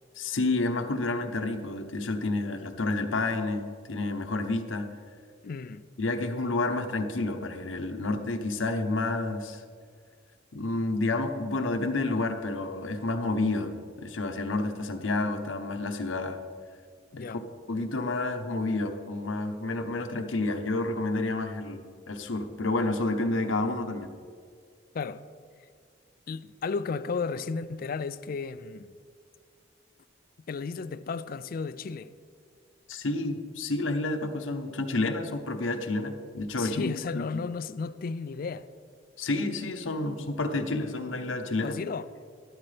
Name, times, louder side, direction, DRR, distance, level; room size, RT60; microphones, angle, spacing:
voice 1, 0.2-4.9 6.0-9.6 10.5-13.7 14.0-16.4 17.2-17.3 17.7-24.1 32.9-37.4 39.2-41.8, left 2 dB, 85° left, 0.8 m, -30 dB
voice 2, 5.4-5.8 17.1-17.4 24.9-25.2 26.3-29.0 30.5-32.1 36.6-38.7 41.6-42.1, left 4 dB, 50° left, 0.4 m, -34 dB
12.5 x 12.0 x 3.3 m
head